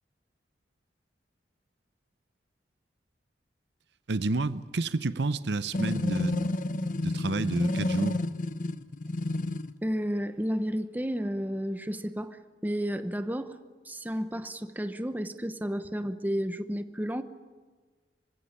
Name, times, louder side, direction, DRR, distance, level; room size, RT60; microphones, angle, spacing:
voice 1, 4.1-6.5 7.0-8.2, right 3 dB, 65° right, 0.7 m, -30 dB
sound 1, 5.7-9.7, left 2 dB, 45° left, 0.8 m, -30 dB
voice 2, 9.8-13.6 13.8-17.2, equal, 10° right, 0.9 m, -32 dB
27.0 x 16.0 x 9.8 m
head